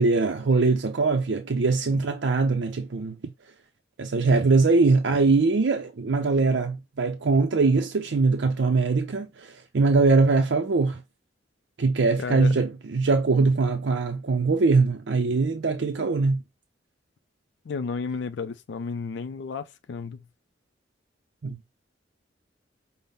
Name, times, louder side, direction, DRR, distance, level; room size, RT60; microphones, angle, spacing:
voice 1, 0.0-3.2 4.0-11.0 11.8-16.4 21.4-21.6, right 3 dB, 70° right, 0.5 m, -22 dB
voice 2, 12.2-12.5 17.7-20.2, left 5 dB, 65° left, 0.4 m, -32 dB
5.4 x 2.1 x 3.4 m
head